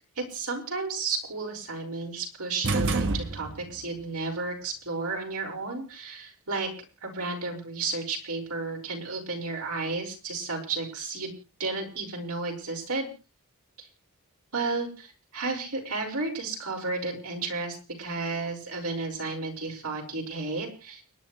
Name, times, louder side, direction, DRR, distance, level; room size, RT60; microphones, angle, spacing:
voice 1, 0.2-6.7 7.0-11.3 11.6-13.1 14.5-21.0, right 3 dB, 85° right, 0 dB, 5.6 m, -32 dB
sound 1, 2.6-3.9, right 3 dB, 60° right, 1.3 m, -28 dB
30.0 x 10.5 x 3.2 m, 0.35 s
head